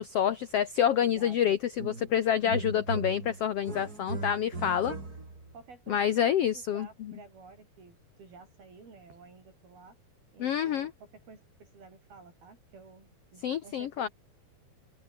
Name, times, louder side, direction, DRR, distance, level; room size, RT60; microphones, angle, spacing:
voice 1, 0.0-4.9 5.9-6.9 10.4-10.9 13.4-14.1, left 9 dB, 85° left, 1.3 m, -27 dB
voice 2, 0.9-1.6 4.6-4.9 5.5-6.2 6.5-10.0 10.3-14.1, right 4 dB, 90° right, 9.1 m, -52 dB
sound 1, 1.8-2.2 2.4-5.5, right 3 dB, 25° right, 4.7 m, -37 dB
omnidirectional pair, 4.2 m